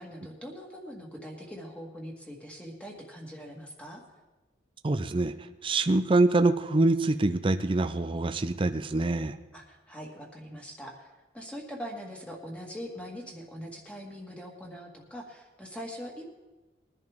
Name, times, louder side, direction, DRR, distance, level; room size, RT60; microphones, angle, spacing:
voice 1, 0.0-4.0 9.5-16.3, equal, 5° left, -1 dB, 1.8 m, -42 dB
voice 2, 4.8-9.4, right 2 dB, 25° right, 10 dB, 0.5 m, -25 dB
21.0 x 11.0 x 3.6 m, 1.1 s
head